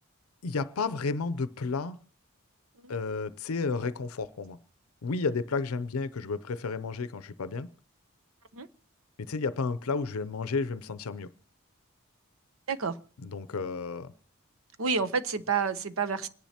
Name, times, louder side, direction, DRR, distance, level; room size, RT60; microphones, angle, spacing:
voice 1, 0.4-2.0 2.9-4.6 5.0-7.7 9.2-11.3 13.2-14.1, left 4 dB, 85° left, 0.5 m, -32 dB
voice 2, 12.7-13.0 14.8-16.3, right 5 dB, 70° right, 0.8 m, -29 dB
27.5 x 10.5 x 2.8 m
head